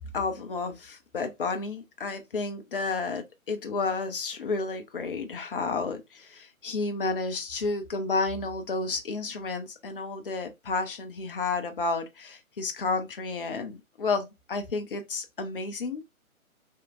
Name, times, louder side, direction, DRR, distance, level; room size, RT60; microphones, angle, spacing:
voice 1, 0.1-16.0, left 3 dB, 40° left, 0.5 m, -31 dB
2.8 x 2.5 x 2.4 m
figure-of-eight pair, 140°, 42 cm